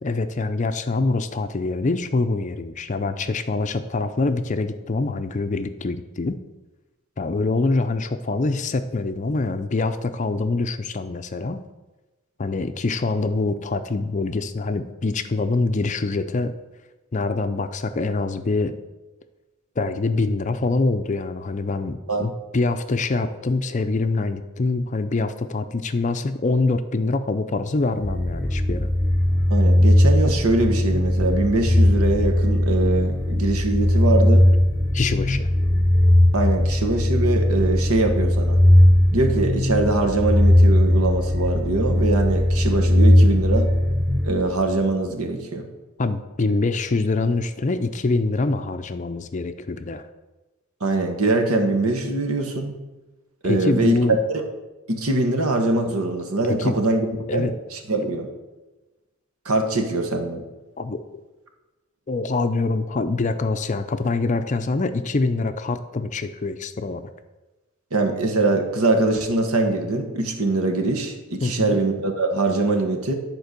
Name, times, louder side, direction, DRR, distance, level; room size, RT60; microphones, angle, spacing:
voice 1, 0.0-6.4 7.2-11.6 12.4-16.5 17.1-18.7 19.8-28.9 34.9-35.5 46.0-50.0 53.4-54.2 56.6-56.8 57.3-57.5 60.8-61.0 62.1-67.0 71.4-71.8, left 3 dB, 35° left, 9 dB, 0.5 m, -24 dB
sound 1, 28.0-44.8, left 1 dB, 10° left, 1.0 m, -18 dB
voice 2, 29.5-34.4 36.3-38.6 39.1-43.7 44.2-45.7 50.8-52.7 53.4-54.4 54.9-57.1 57.3-58.3 59.4-60.4 67.9-73.1, right 2 dB, 80° right, 4 dB, 1.3 m, -23 dB
10.5 x 4.5 x 6.7 m, 1.1 s
head